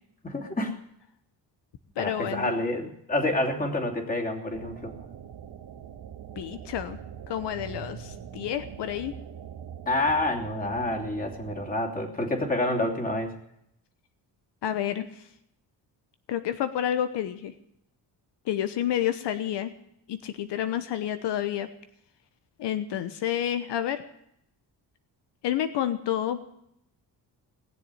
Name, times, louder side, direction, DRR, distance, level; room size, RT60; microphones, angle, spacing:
voice 1, 0.2-0.7 2.0-4.9 9.9-13.3, left 1 dB, 20° left, 1 dB, 3.0 m, -28 dB
voice 2, 2.0-2.5 6.4-7.0 7.3-9.1 14.6-15.1 16.3-17.5 18.5-19.7 20.1-21.7 22.6-24.0 25.4-26.4, left 10 dB, 85° left, 10 dB, 1.1 m, -29 dB
sound 1, 4.5-11.7, right 8 dB, 65° right, 1.5 m, -43 dB
19.0 x 7.4 x 9.8 m, 0.76 s
cardioid pair, 100°, 41 cm